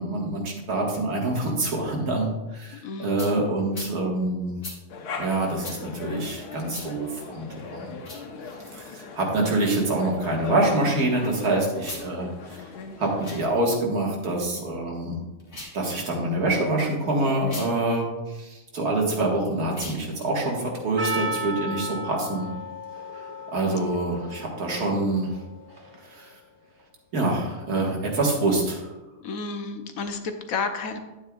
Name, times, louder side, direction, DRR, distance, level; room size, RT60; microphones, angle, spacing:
voice 1, 0.0-4.6 5.2-8.0 8.7-12.7 13.0-15.2 15.7-22.5 23.5-25.4 26.1-26.3 27.1-28.9, right 2 dB, 75° right, -1 dB, 2.1 m, -26 dB
voice 2, 2.8-3.3 23.7-23.8 29.2-31.0, left 4 dB, 70° left, 6 dB, 1.1 m, -31 dB
sound 1, 3.2-3.3 3.7-3.9 4.6-4.8 5.6-5.8 6.7-6.9 8.0-8.2 9.6-9.9 11.8-12.1 13.1-13.4 15.4-15.8 17.4-17.7 19.7-20.0, left 2 dB, 35° left, 1.7 m, -39 dB
sound 2, 4.9-13.5, left 4 dB, 90° left, 1.4 m, -39 dB
Percussion, 21.0-26.2, equal, 30° right, 1.3 m, -34 dB
10.0 x 8.9 x 2.3 m, 1.1 s
omnidirectional pair, 1.6 m